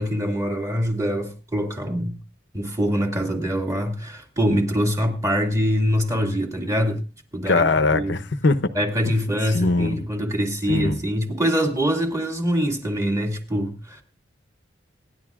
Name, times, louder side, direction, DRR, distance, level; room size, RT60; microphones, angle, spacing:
voice 1, 0.0-2.1 2.5-7.0 7.3-7.6 7.9-8.2 8.7-14.0, equal, 15° right, 2.2 m, -24 dB
voice 2, 7.5-8.7 9.0-9.1 9.5-10.0 10.7-11.0, left 3 dB, 65° left, 0.8 m, -21 dB
25.5 x 10.5 x 2.4 m
head